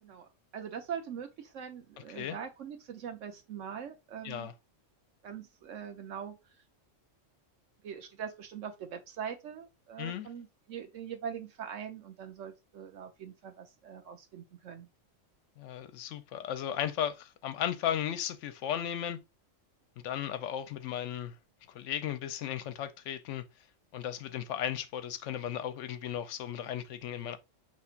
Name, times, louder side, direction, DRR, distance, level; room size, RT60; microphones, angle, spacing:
voice 1, 0.0-4.5 5.2-6.4 7.8-14.9, right 8 dB, 75° right, 1.1 m, -42 dB
voice 2, 15.6-19.2 20.0-21.3 21.7-23.4 23.9-27.4, left 10 dB, 75° left, 0.9 m, -35 dB
5.6 x 3.0 x 2.4 m
omnidirectional pair, 1.3 m